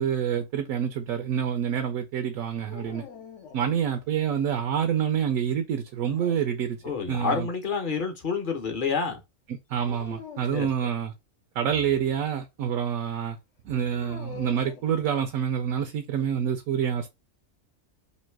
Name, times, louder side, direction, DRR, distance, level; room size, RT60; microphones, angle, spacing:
voice 1, 0.0-3.0 3.5-6.8 7.1-7.5 9.7-11.1 11.6-13.4 13.6-17.1, right 8 dB, 75° right, 1.0 m, -27 dB
sound 1, 2.7-4.2 5.9-7.0 9.8-10.6 13.9-15.5, left 6 dB, 60° left, 1.1 m, -45 dB
voice 2, 6.8-9.2 10.5-10.7, left 5 dB, 45° left, 0.9 m, -28 dB
3.1 x 2.8 x 4.5 m
omnidirectional pair, 1.5 m